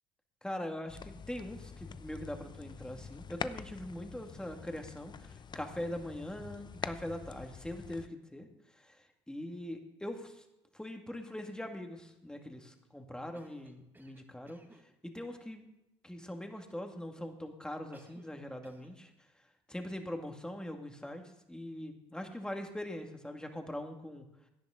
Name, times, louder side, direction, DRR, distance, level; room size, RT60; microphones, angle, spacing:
voice 1, 0.4-10.4 10.7-14.6 15.0-15.6 16.0-19.1 19.7-24.3, left 1 dB, 5° left, 4 dB, 2.2 m, -42 dB
sound 1, 0.9-8.1, left 6 dB, 35° left, 0.7 m, -45 dB
Cough, 13.3-14.9 17.9-18.4 18.6-19.0, right 2 dB, 15° right, 1.9 m, -59 dB
17.0 x 10.5 x 3.8 m, 0.92 s
supercardioid pair, 70°, 12 cm